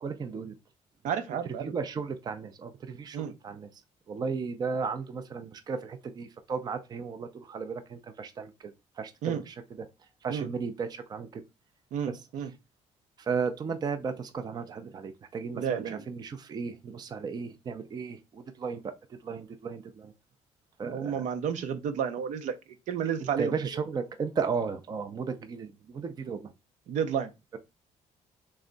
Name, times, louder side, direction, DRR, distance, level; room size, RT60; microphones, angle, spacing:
voice 1, 0.0-0.5 1.6-3.7 4.1-9.9 10.2-11.4 12.1-12.2 13.2-20.1 20.8-21.2 23.2-26.5, right 5 dB, 30° right, 0.5 m, -35 dB
voice 2, 1.0-1.7 3.1-3.3 9.2-9.4 10.3-10.5 11.9-12.5 15.5-16.0 20.8-22.5 22.9-23.5 26.9-27.3, right 8 dB, 70° right, 0.7 m, -31 dB
3.5 x 3.2 x 3.9 m
cardioid pair, 140°, 13 cm